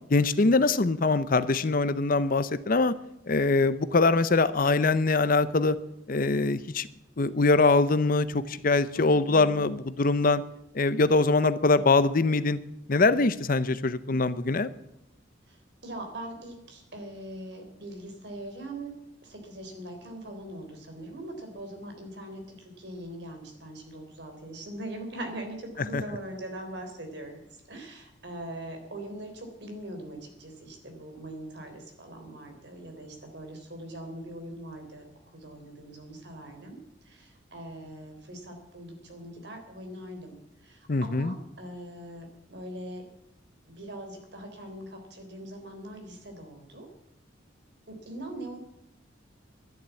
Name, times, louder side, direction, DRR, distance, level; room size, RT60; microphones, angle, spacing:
voice 1, 0.1-2.9 3.3-5.8 6.1-6.9 7.2-10.4 10.7-12.6 12.9-14.7 25.9-26.0 40.9-41.3, left 3 dB, 45° left, 14 dB, 0.7 m, -23 dB
voice 2, 8.9-9.8 15.5-15.6 15.8-18.9 19.2-27.4 27.7-35.1 35.3-36.8 37.1-40.4 40.6-43.1 43.7-46.9 47.9-48.6, right 1 dB, 60° right, 4 dB, 3.7 m, -41 dB
11.5 x 11.0 x 8.4 m, 0.82 s
head